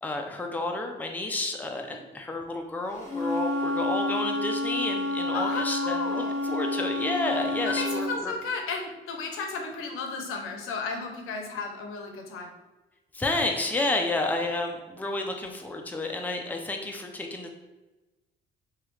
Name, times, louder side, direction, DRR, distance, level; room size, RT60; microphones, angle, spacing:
voice 1, 0.0-8.3 13.1-17.5, left 2 dB, 10° left, 2 dB, 0.4 m, -31 dB
Wind instrument woodwind instrument, 3.0-8.1, left 2 dB, 35° left, 1.0 m, -29 dB
voice 2, 5.3-6.4 7.6-12.5, left 4 dB, 90° left, 3 dB, 0.6 m, -34 dB
3.0 x 2.3 x 3.0 m, 1.1 s
cardioid pair, 85°, 21 cm